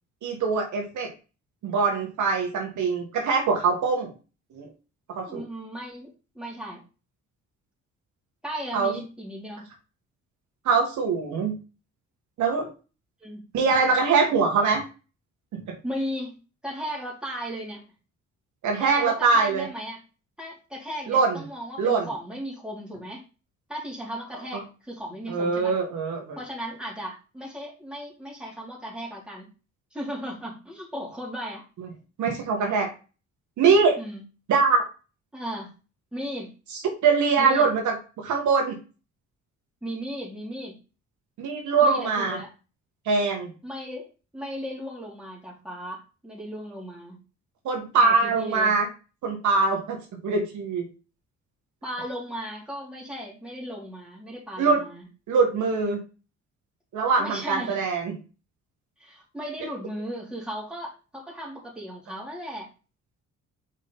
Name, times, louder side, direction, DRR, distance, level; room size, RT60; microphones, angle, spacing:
voice 1, 0.2-1.1 1.6-4.1 4.6-4.7 5.2-5.4 8.7-9.0 10.7-11.5 12.4-12.7 13.5-14.8 18.6-19.7 21.1-21.4 21.8-22.1 24.5-24.6 25.3-26.4 32.2-32.9 33.6-34.0 34.5-34.8 37.0-37.9 38.2-38.8 41.4-42.4 43.1-43.5 47.7-48.9 49.2-50.0 50.2-50.9 54.6-54.8 55.3-56.0 56.9-58.1, right 4 dB, 75° right, 1 dB, 1.7 m, -23 dB
voice 2, 5.2-6.8 8.4-9.6 13.2-13.4 15.8-16.4 16.6-17.8 18.8-20.0 20.4-23.2 23.7-25.8 26.3-29.5 29.9-31.6 34.0-34.2 35.3-35.7 36.1-36.5 37.4-37.7 39.8-40.8 41.8-42.5 43.6-47.2 48.0-48.7 51.8-55.0 57.2-57.8 59.0-62.7, equal, 5° right, -4 dB, 3.2 m, -36 dB
5.4 x 4.9 x 4.0 m, 0.33 s
cardioid pair, 90°, 30 cm